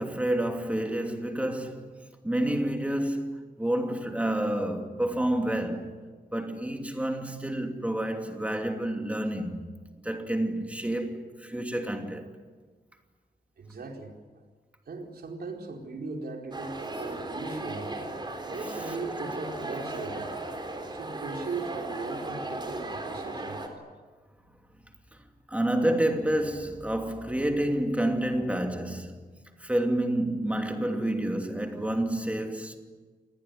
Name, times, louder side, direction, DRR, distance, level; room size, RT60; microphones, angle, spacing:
voice 1, 0.0-1.9 2.2-6.0 6.3-9.7 10.0-12.2 18.9-19.0 25.5-29.2 29.6-32.8, right 1 dB, 10° right, 2.8 m, -29 dB
voice 2, 13.6-14.1 14.9-17.9 18.4-20.3 20.9-23.6, right 3 dB, 75° right, 4.6 m, -38 dB
sound 1, 16.5-23.7, right 2 dB, 30° right, 4.0 m, -36 dB
28.0 x 19.5 x 9.9 m
wide cardioid pair, 150°, 16 cm